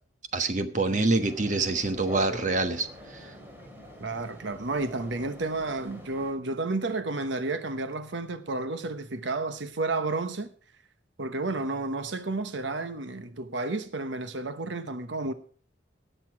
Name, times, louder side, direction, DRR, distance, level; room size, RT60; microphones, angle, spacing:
voice 1, 0.3-2.9, right 3 dB, 40° right, 1.3 m, -25 dB
sound 1, 1.2-6.3, equal, 10° right, 2.7 m, -44 dB
voice 2, 4.0-10.5 11.2-15.3, right 2 dB, 85° right, 1.0 m, -31 dB
18.5 x 6.9 x 4.7 m
head